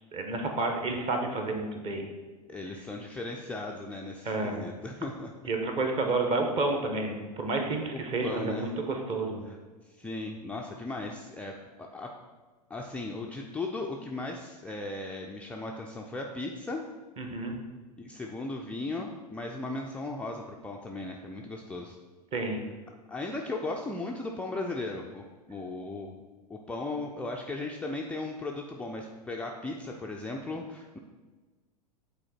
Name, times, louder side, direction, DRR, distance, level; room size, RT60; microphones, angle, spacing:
voice 1, 0.1-2.0 4.2-4.7 5.5-9.4 17.2-17.5 22.3-22.6, right 2 dB, 30° right, 3 dB, 1.1 m, -30 dB
voice 2, 2.5-5.3 7.9-8.7 9.5-9.6 9.9-12.1 12.7-16.8 18.0-22.0 23.1-26.1 26.5-31.0, left 2 dB, 5° left, -1 dB, 0.4 m, -37 dB
8.8 x 4.0 x 4.3 m, 1.3 s
figure-of-eight pair, 90°, 21 cm